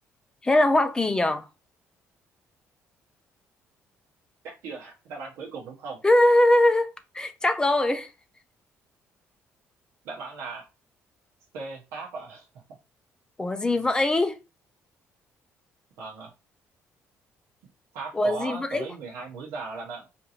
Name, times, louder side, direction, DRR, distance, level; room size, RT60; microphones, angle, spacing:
voice 1, 0.4-1.4 6.0-8.1 13.4-14.4 18.1-18.9, left 1 dB, 15° left, 0.4 m, -22 dB
voice 2, 4.4-6.0 10.0-10.6 11.5-12.5 16.0-16.3 17.9-20.1, right 4 dB, 85° right, 0.8 m, -37 dB
3.7 x 2.6 x 2.7 m
cardioid pair, 110°, 5 cm